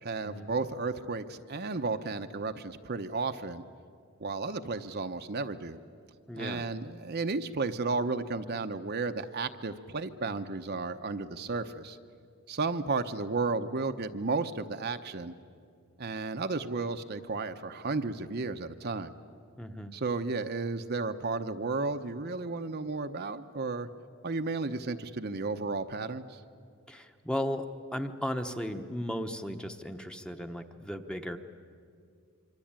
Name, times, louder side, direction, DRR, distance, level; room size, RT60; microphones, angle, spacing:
voice 1, 0.0-3.6 4.2-5.8 6.3-12.0 12.5-15.3 16.0-19.1 19.9-23.9 24.2-26.4, right 3 dB, 50° right, 7 dB, 0.8 m, -33 dB
voice 2, 6.3-6.6 19.6-19.9 26.9-27.7 27.9-31.4, equal, 5° left, 6 dB, 1.0 m, -35 dB
25.5 x 25.0 x 8.9 m, 2.2 s
head